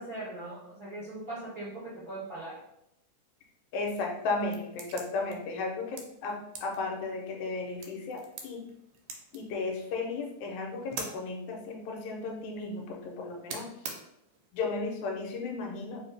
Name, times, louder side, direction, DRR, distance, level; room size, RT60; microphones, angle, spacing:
voice 1, 0.0-2.6, right 2 dB, 45° right, -11 dB, 1.4 m, -40 dB
voice 2, 3.7-8.7 9.3-13.7 14.5-16.0, left 3 dB, 85° left, 1 dB, 2.0 m, -34 dB
sound 1, 3.9-14.5, right 4 dB, 85° right, 2.1 m, -47 dB
4.5 x 2.7 x 3.3 m, 0.79 s
omnidirectional pair, 3.3 m